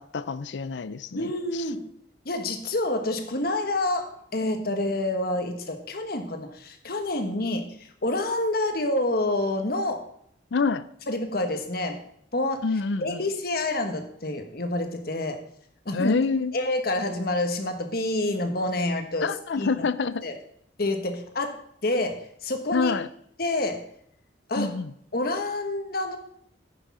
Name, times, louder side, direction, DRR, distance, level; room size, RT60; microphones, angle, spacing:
voice 1, 0.0-1.6 10.5-10.9 12.6-13.2 15.9-16.5 19.2-20.2 22.7-23.1 24.6-24.9, left 4 dB, 75° left, 16 dB, 0.5 m, -27 dB
voice 2, 1.1-1.8 2.2-10.0 11.1-12.0 12.3-12.6 13.0-15.4 15.8-16.1 16.5-19.3 19.6-19.9 20.2-20.3 20.8-21.5 21.8-22.9 23.4-23.8 24.5-24.7 25.1-26.2, left 2 dB, 55° left, 6 dB, 1.3 m, -28 dB
9.8 x 6.5 x 6.1 m, 0.69 s
head